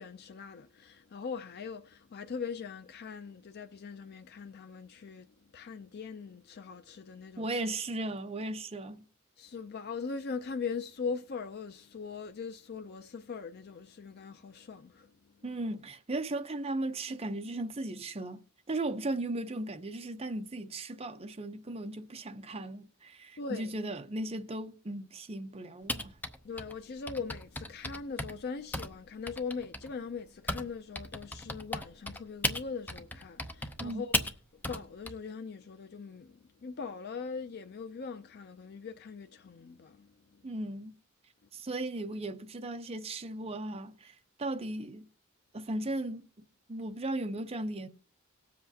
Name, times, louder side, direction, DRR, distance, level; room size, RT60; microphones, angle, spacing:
voice 1, 0.0-7.6 9.4-15.1 23.4-23.7 26.4-34.2 34.7-40.4, left 5 dB, 50° left, 0.4 m, -41 dB
voice 2, 7.4-9.1 15.4-18.4 18.7-26.2 33.8-34.0 40.4-41.0 41.5-44.1 44.4-45.1 45.5-46.3 46.7-47.9, right 2 dB, 30° right, 0.7 m, -36 dB
Typing, 25.9-30.7 30.9-35.1, left 1 dB, 10° left, 0.6 m, -35 dB
18.5 x 7.6 x 2.8 m
head